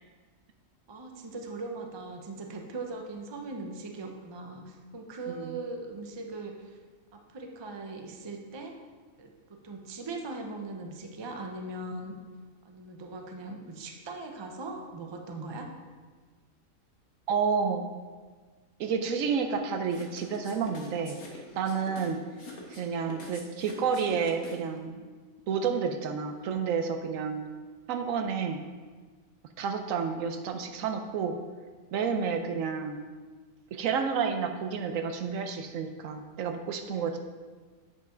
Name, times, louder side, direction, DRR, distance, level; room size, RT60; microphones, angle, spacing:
voice 1, 0.9-6.8 7.1-8.7 9.2-12.1 12.6-15.7, right 3 dB, 30° right, 2 dB, 0.5 m, -40 dB
voice 2, 5.3-5.6 17.3-17.9 18.8-22.2 22.7-25.0 25.5-27.4 27.9-28.6 29.6-31.4 31.9-33.0 33.7-37.2, right 6 dB, 75° right, 6 dB, 1.0 m, -30 dB
sound 1, 19.9-24.8, left 3 dB, 65° left, 1.5 m, -46 dB
8.4 x 5.5 x 3.8 m, 1.5 s
omnidirectional pair, 1.4 m